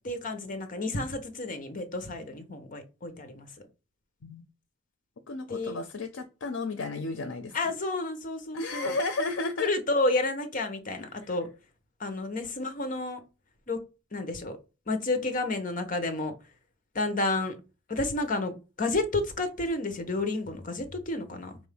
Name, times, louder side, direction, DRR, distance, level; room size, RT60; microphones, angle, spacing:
voice 1, 0.0-3.5 5.5-5.8 7.5-9.0 9.6-11.5 12.0-13.2 13.7-13.8 14.1-14.6 14.9-16.3 16.9-17.6 17.9-21.5, left 2 dB, 45° left, 0.9 m, -30 dB
voice 2, 5.3-7.6 8.5-9.7, left 2 dB, 90° left, 0.6 m, -33 dB
4.7 x 2.6 x 3.4 m
head